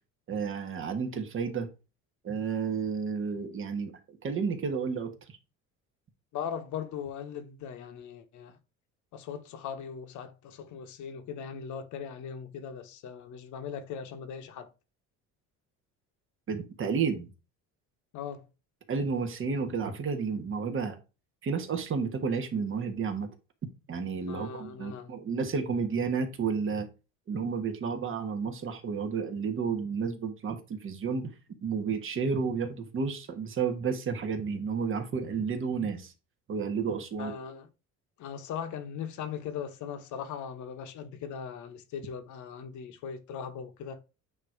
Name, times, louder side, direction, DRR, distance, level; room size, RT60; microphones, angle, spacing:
voice 1, 0.3-1.7 2.2-5.1 16.5-17.3 18.9-21.0 21.4-23.3 23.9-26.9 27.3-31.3 31.6-36.1 36.5-37.3, right 5 dB, 40° right, 1.4 m, -31 dB
voice 2, 6.3-8.6 9.1-14.7 18.1-18.5 24.2-25.2 37.2-37.7 38.2-44.0, left 7 dB, 65° left, 1.2 m, -39 dB
8.9 x 3.1 x 4.5 m
cardioid pair, 140°, 32 cm